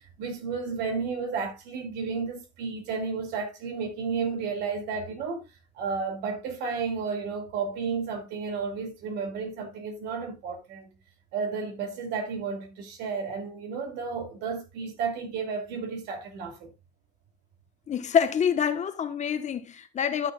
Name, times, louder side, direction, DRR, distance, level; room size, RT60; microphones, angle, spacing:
voice 1, 0.0-5.4 5.7-10.9 11.3-16.7, right 5 dB, 90° right, 2.9 m, -32 dB
voice 2, 17.9-20.3, left 7 dB, 45° left, 1.3 m, -26 dB
13.0 x 6.6 x 2.4 m
cardioid pair, 110°, 17 cm